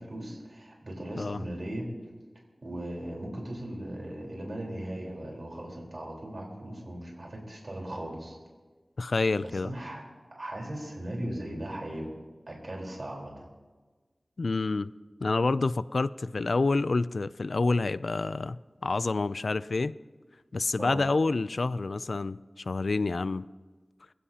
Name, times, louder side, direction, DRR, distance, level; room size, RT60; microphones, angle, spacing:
voice 1, 0.0-1.9 2.6-8.4 9.4-10.0 10.3-12.1 12.5-13.4 20.8-21.0, right 1 dB, 60° right, -2 dB, 4.1 m, -38 dB
voice 2, 9.0-9.7 14.4-14.9 15.2-20.0 20.5-23.5, left 3 dB, 90° left, 17 dB, 0.3 m, -28 dB
24.0 x 15.5 x 2.9 m, 1.3 s
wide cardioid pair, 60°, 0 cm